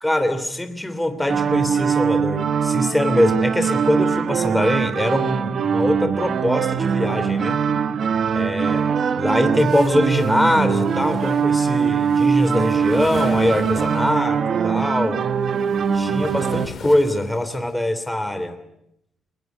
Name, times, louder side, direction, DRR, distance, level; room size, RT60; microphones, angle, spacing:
voice 1, 0.0-7.6 8.3-8.9 9.2-15.2 15.9-18.6, left 1 dB, 10° left, 9 dB, 3.0 m, -22 dB
sound 1, 1.3-16.7, right 6 dB, 55° right, 1.2 m, -22 dB
sound 2, 9.6-14.2 15.2-17.7, left 6 dB, 50° left, 2.0 m, -39 dB
24.0 x 20.5 x 9.3 m, 0.79 s
cardioid pair, 90°, 0 cm